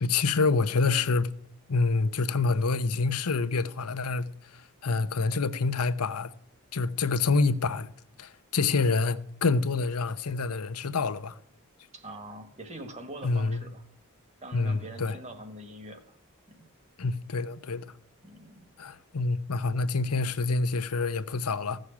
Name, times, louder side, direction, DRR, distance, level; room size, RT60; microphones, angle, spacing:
voice 1, 0.0-1.3 1.7-6.3 6.7-7.9 8.2-11.4 13.2-13.7 14.5-15.2 17.0-17.9 18.8-21.8, left 4 dB, 85° left, 0.8 m, -27 dB
voice 2, 11.9-13.8 14.4-16.0 16.5-16.7 18.2-18.7, right 1 dB, 30° right, 1.7 m, -43 dB
15.5 x 6.5 x 8.6 m
head